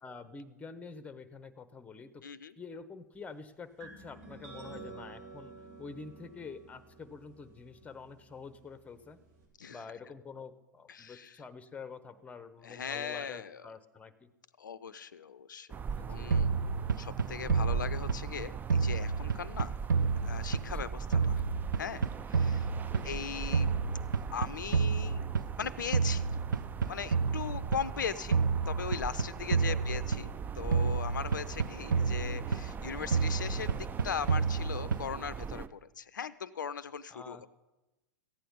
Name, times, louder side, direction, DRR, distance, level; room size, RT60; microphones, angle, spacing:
voice 1, 0.0-2.2 2.6-5.5 5.8-9.2 9.7-14.3 15.9-16.3 20.8-20.9 22.5-22.6 22.9-23.2 29.7-30.0 37.1-37.5, left 4 dB, 15° left, 13 dB, 0.9 m, -47 dB
voice 2, 2.2-2.5 9.6-9.8 10.9-11.4 12.6-13.7 14.6-15.7 16.0-16.5 17.0-19.7 20.2-21.4 21.8-22.7 23.0-23.7 24.3-25.2 25.6-26.3 26.9-30.3 30.6-33.7 34.0-37.5, left 7 dB, 80° left, 16 dB, 0.5 m, -39 dB
sound 1, 3.8-9.5, right 3 dB, 60° right, 3.5 m, -51 dB
sound 2, 15.7-35.7, right 6 dB, 20° right, 0.4 m, -40 dB
sound 3, 16.3-18.4 18.7-20.9 21.1-23.2 23.5-25.6 25.9-27.9 28.3-30.4 30.7-32.8 33.1-35.2, right 5 dB, 85° right, 0.4 m, -30 dB
14.5 x 9.1 x 5.3 m, 1.0 s
hypercardioid pair, 100°, 10 cm